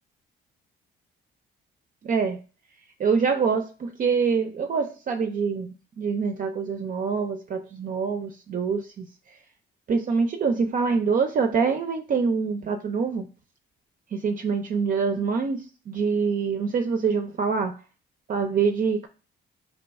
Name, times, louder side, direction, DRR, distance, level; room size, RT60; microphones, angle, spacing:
voice 1, 2.0-2.4 3.0-9.0 9.9-13.3 14.1-17.7 18.3-19.1, right 5 dB, 45° right, 5 dB, 0.4 m, -25 dB
2.9 x 2.3 x 4.0 m, 0.35 s
cardioid pair, 90°, 20 cm